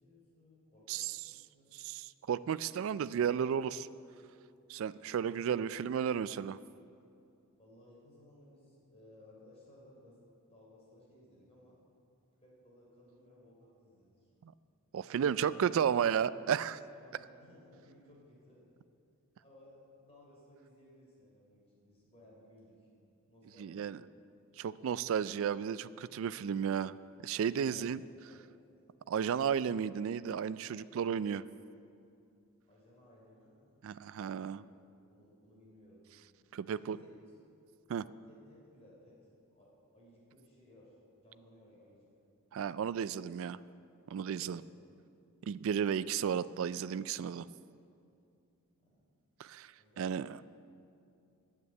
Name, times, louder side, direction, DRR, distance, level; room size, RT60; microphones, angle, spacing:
voice 1, 0.0-1.7 7.6-10.2 10.5-11.8 12.4-14.3 15.3-15.9 16.9-18.7 19.4-22.9 23.2-24.1 27.6-28.6 32.6-33.7 34.7-36.0 36.7-37.3 38.2-42.1 44.3-44.8 48.8-49.1 49.7-50.2, left 1 dB, 30° left, -4 dB, 3.4 m, -60 dB
voice 2, 1.7-3.9 4.7-6.6 14.4-14.5 14.9-16.8 23.6-24.0 24.6-27.0 27.2-28.0 29.1-31.4 33.8-34.6 36.5-37.0 37.9-38.1 42.5-43.6 44.1-44.6 45.4-47.5 49.4-50.4, right 8 dB, 60° right, 16 dB, 0.3 m, -33 dB
9.5 x 8.3 x 8.4 m, 2.5 s
head